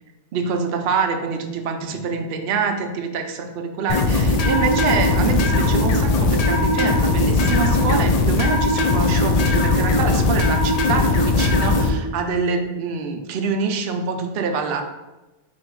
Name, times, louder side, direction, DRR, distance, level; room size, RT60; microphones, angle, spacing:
voice 1, 0.3-14.8, right 5 dB, 65° right, 4 dB, 0.7 m, -25 dB
sound 1, 3.9-11.9, left 3 dB, 70° left, 0.3 m, -19 dB
4.1 x 2.6 x 4.5 m, 1.1 s
omnidirectional pair, 1.2 m